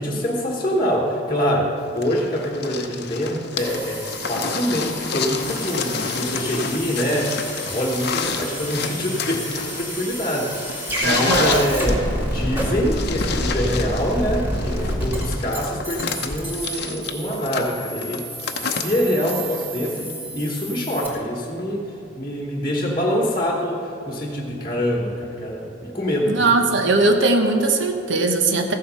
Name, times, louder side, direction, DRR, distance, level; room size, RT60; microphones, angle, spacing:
voice 1, 0.0-7.4 7.6-18.3 18.6-26.5, equal, 20° left, -4 dB, 1.3 m, -25 dB
sound 1, 2.0-20.1 21.1-21.2, left 5 dB, 55° left, 0.7 m, -30 dB
sound 2, 3.6-21.1, equal, 10° right, 2.5 m, -29 dB
voice 2, 11.0-11.7 26.3-28.7, right 3 dB, 65° right, 4 dB, 1.0 m, -19 dB
15.0 x 7.5 x 5.6 m, 2.9 s
head